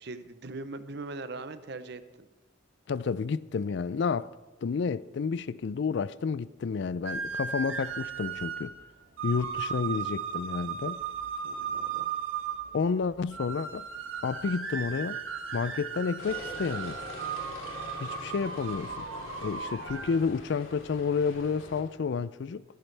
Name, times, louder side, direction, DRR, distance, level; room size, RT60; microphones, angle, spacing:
voice 1, 0.0-2.3 11.4-12.1, right 3 dB, 55° right, 0.7 m, -41 dB
voice 2, 2.9-4.3 4.6-8.7 9.2-11.0 12.7-13.8 14.2-15.2 15.5-17.0 18.0-19.0 19.4-22.6, left 5 dB, 60° left, 0.4 m, -30 dB
sound 1, 7.1-20.2, right 7 dB, 85° right, 1.4 m, -36 dB
sound 2, 16.2-21.8, left 2 dB, 85° left, 2.8 m, -44 dB
23.0 x 10.5 x 3.3 m
head